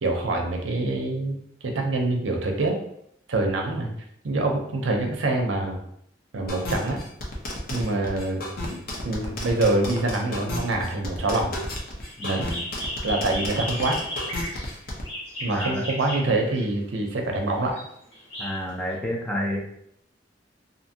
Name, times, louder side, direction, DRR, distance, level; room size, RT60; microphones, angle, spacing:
voice 1, 0.0-2.8 3.3-3.9 4.2-5.8 6.3-7.0 7.7-8.4 8.7-11.5 12.2-12.5 13.0-14.0 15.4-17.8, right 2 dB, 80° right, 2 dB, 0.6 m, -25 dB
sound 1, 6.5-15.0, left 1 dB, 50° left, 0.6 m, -32 dB
sound 2, 12.0-16.8 17.6-18.9, equal, 90° left, 1.4 m, -35 dB
voice 2, 12.2-12.6 15.4-15.8 18.4-19.6, equal, 5° left, -3 dB, 0.5 m, -30 dB
2.7 x 2.6 x 2.7 m, 0.73 s
head